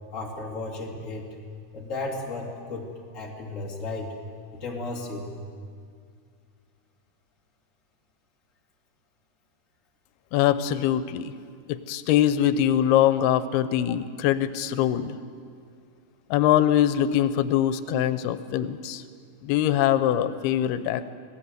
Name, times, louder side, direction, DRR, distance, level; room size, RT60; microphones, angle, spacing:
voice 1, 0.1-1.3 1.7-2.9 3.1-4.1 4.5-5.3, left 2 dB, 25° left, -1 dB, 2.5 m, -34 dB
voice 2, 10.3-11.3 11.7-15.2 16.3-19.0 19.4-21.1, left 11 dB, 90° left, 12 dB, 2.7 m, -23 dB
25.5 x 18.5 x 8.0 m, 2.2 s
omnidirectional pair, 4.4 m